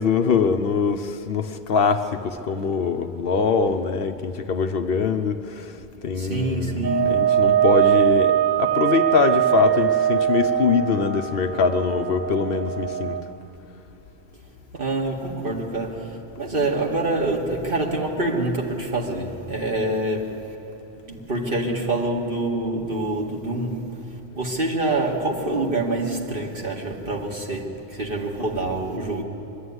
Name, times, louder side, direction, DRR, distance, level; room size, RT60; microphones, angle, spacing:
voice 1, 0.0-13.2, left 5 dB, 65° left, 1.0 m, -23 dB
voice 2, 6.2-7.1 14.7-20.5 21.1-23.9 24.4-29.2, right 2 dB, 55° right, 2.1 m, -26 dB
sound 1, 6.8-13.2, right 10 dB, 25° right, 1.4 m, -21 dB
22.5 x 13.0 x 9.5 m
omnidirectional pair, 1.1 m